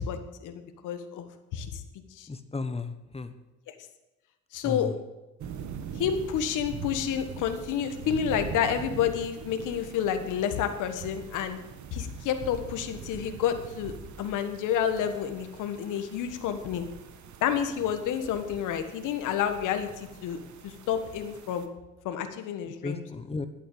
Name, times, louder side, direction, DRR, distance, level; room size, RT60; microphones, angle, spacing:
voice 1, 0.0-1.8 2.1-2.3 3.7-3.8 4.5-4.9 6.0-11.6 11.9-16.9 17.4-21.7 22.0-23.0, left 9 dB, 90° left, 8 dB, 1.5 m, -30 dB
voice 2, 2.3-3.3 4.6-4.9 22.6-23.5, left 3 dB, 20° left, 10 dB, 1.3 m, -34 dB
sound 1, 5.4-21.7, right 7 dB, 70° right, 1.5 m, -43 dB
11.5 x 8.4 x 8.5 m, 1.0 s
cardioid pair, 90°, 30 cm